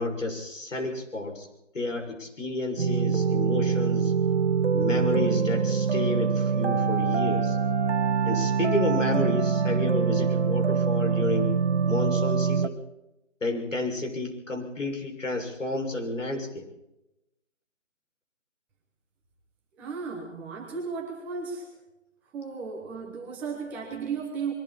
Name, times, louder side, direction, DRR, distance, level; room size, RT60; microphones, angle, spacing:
voice 1, 0.0-1.5 1.7-4.1 4.7-7.6 8.2-11.5 11.9-12.8 13.4-16.7, left 2 dB, 85° left, 3 dB, 6.6 m, -31 dB
sound 1, 2.8-12.7, right 6 dB, 60° right, 1.4 m, -24 dB
voice 2, 19.8-21.7 22.3-24.5, right 5 dB, 5° right, -2 dB, 0.9 m, -35 dB
26.5 x 22.5 x 4.3 m, 0.90 s
figure-of-eight pair, 160°, 37 cm